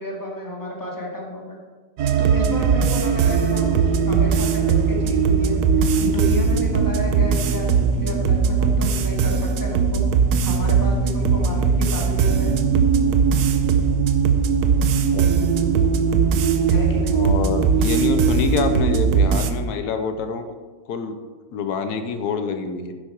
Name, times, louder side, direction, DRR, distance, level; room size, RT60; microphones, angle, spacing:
voice 1, 0.0-1.6 2.2-10.1 10.4-12.5 16.7-17.2, equal, 10° left, -2 dB, 2.0 m, -31 dB
sound 1, 2.0-19.5, right 6 dB, 80° right, 1.3 m, -19 dB
voice 2, 14.9-15.5 17.1-20.5 20.9-21.2 21.5-22.9, left 5 dB, 85° left, 8 dB, 1.3 m, -26 dB
10.5 x 7.6 x 4.6 m, 1.4 s
omnidirectional pair, 1.6 m